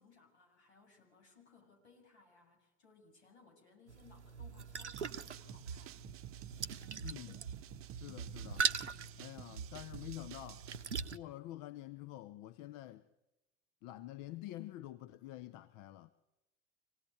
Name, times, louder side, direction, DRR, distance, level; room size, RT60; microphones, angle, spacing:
voice 1, 0.0-6.0, left 4 dB, 70° left, 7.6 m, -64 dB
sound 1, 3.9-11.2, right 6 dB, 85° right, 0.9 m, -41 dB
sound 2, 4.9-10.9, right 11 dB, 40° right, 0.9 m, -52 dB
voice 2, 6.9-7.4 7.9-8.7 9.2-10.6 11.1-13.0 13.8-16.1, left 15 dB, 55° left, 1.0 m, -48 dB
26.0 x 18.0 x 9.5 m
figure-of-eight pair, 65°, 34 cm